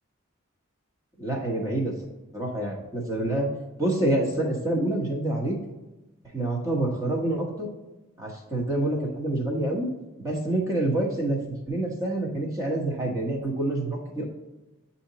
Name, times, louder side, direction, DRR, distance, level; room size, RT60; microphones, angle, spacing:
voice 1, 1.2-1.9 2.3-3.5 3.8-5.6 6.3-7.7 8.2-9.9 10.2-14.2, right 1 dB, 15° right, -2 dB, 1.1 m, -27 dB
8.4 x 2.8 x 4.0 m, 1.1 s
head